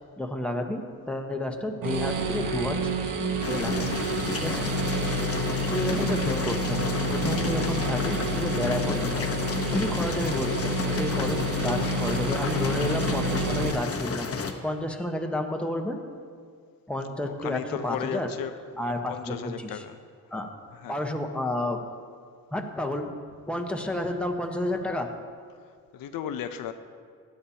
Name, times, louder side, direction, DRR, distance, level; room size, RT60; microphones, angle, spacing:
voice 1, 0.2-2.9 3.5-4.0 4.4-4.7 5.0-5.1 5.7-9.3 9.7-14.3 14.6-16.0 16.9-18.3 18.8-19.8 20.3-20.5 20.9-21.8 22.5-23.1 23.5-25.1, left 1 dB, 5° left, 2 dB, 1.1 m, -31 dB
sound 1, 1.8-13.7, right 1 dB, 70° right, 1.2 m, -29 dB
sound 2, 3.4-14.5, left 4 dB, 45° left, 1.0 m, -32 dB
voice 2, 12.3-13.0 17.2-20.0 20.3-20.4 20.7-21.1 25.6-26.7, left 8 dB, 85° left, 8 dB, 0.7 m, -37 dB
17.0 x 11.5 x 2.9 m, 2.1 s
cardioid pair, 95°, 34 cm